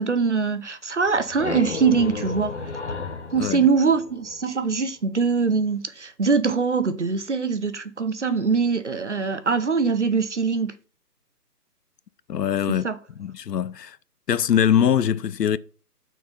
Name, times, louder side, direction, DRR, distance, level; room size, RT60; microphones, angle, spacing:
voice 1, 0.0-2.6 3.3-10.8 12.7-13.0, right 5 dB, 45° right, 0.7 m, -23 dB
sound 1, 1.0-4.7, left 4 dB, 45° left, 0.9 m, -33 dB
voice 2, 3.4-3.7 12.3-12.9 13.2-14.0 14.3-15.6, left 9 dB, 80° left, 0.6 m, -22 dB
6.1 x 4.6 x 5.3 m
figure-of-eight pair, 165°, 48 cm